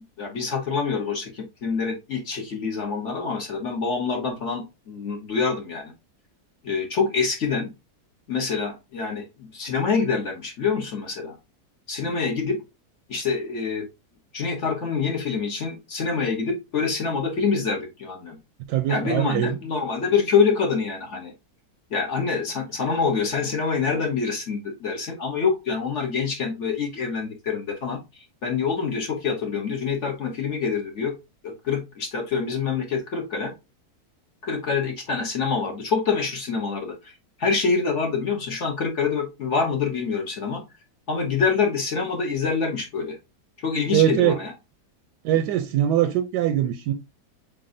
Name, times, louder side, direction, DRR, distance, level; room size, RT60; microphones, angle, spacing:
voice 1, 0.2-5.9 6.6-7.7 8.3-9.2 9.5-11.3 11.9-12.6 13.1-13.8 14.3-18.4 18.9-21.3 21.9-28.0 28.4-31.1 31.4-33.5 34.4-37.1 37.4-40.6 41.1-43.2 43.6-44.5, left 5 dB, 50° left, 1.2 m, -26 dB
voice 2, 18.7-19.6 43.9-44.4 45.2-46.9, right 11 dB, 85° right, 1.2 m, -22 dB
7.2 x 2.4 x 2.5 m
omnidirectional pair, 1.7 m